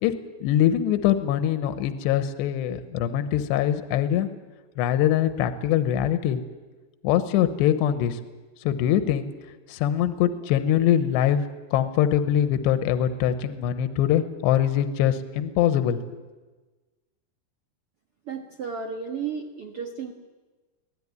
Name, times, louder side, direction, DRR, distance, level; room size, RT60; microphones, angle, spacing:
voice 1, 0.4-4.3 4.8-6.4 7.0-8.2 8.6-9.3 9.7-11.4 11.7-16.2, left 10 dB, 80° left, 9 dB, 3.1 m, -23 dB
voice 2, 18.3-20.1, right 6 dB, 65° right, 2 dB, 1.4 m, -33 dB
24.0 x 17.5 x 9.6 m, 1.3 s
omnidirectional pair, 5.1 m